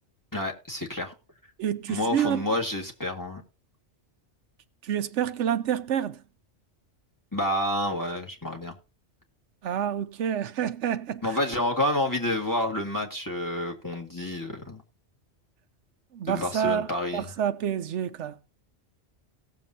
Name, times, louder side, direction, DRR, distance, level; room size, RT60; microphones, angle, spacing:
voice 1, 0.3-1.1 1.9-3.4 7.3-8.7 11.2-14.8 16.3-17.3, left 1 dB, 15° left, 1.8 m, -29 dB
voice 2, 1.6-2.4 4.8-6.2 9.6-11.4 16.1-16.9 17.1-18.5, right 9 dB, 90° right, 1.0 m, -28 dB
18.5 x 7.1 x 2.7 m
omnidirectional pair, 1.2 m